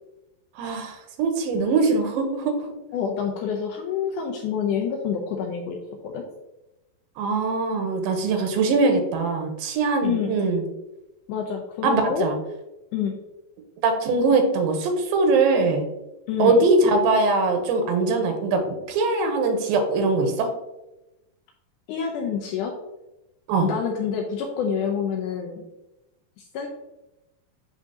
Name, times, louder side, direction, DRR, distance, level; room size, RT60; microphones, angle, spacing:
voice 1, 0.6-2.5 7.2-10.6 11.8-12.4 13.8-15.9 16.4-18.6 18.9-20.5 23.5-23.7, right 3 dB, 85° right, 5 dB, 2.6 m, -22 dB
voice 2, 2.9-5.8 6.0-6.2 10.0-10.3 11.3-12.3 12.9-13.2 16.3-16.6 21.9-22.8 23.6-25.6 26.5-26.7, left 7 dB, 80° left, 2 dB, 1.9 m, -27 dB
9.8 x 3.6 x 2.8 m, 0.97 s
omnidirectional pair, 4.1 m